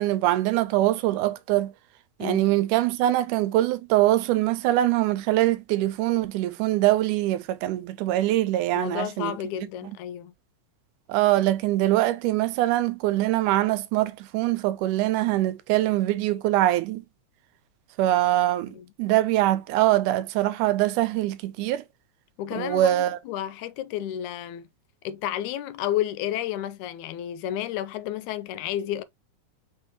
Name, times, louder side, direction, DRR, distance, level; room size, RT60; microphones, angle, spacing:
voice 1, 0.0-1.7 2.2-9.4 11.1-17.0 18.0-21.8 22.6-23.2, right 15 dB, 90° right, 2.1 m, -23 dB
voice 2, 8.7-10.3 18.6-18.9 22.4-24.7 25.0-29.0, left 12 dB, 80° left, 1.9 m, -31 dB
5.7 x 3.3 x 2.8 m
omnidirectional pair, 3.6 m